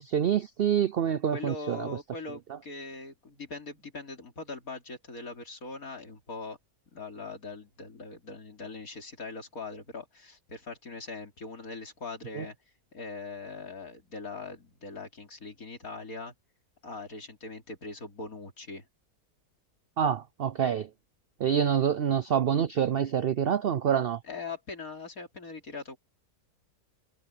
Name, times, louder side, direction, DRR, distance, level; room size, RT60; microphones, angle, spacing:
voice 1, 0.0-1.9 12.3-12.4 20.0-20.9 21.4-24.2, right 8 dB, 65° right, 0.5 m, -26 dB
voice 2, 1.3-6.6 6.9-12.6 12.9-16.3 16.8-18.9 24.2-26.0, left 3 dB, 70° left, 3.8 m, -41 dB
omnidirectional pair, 1.6 m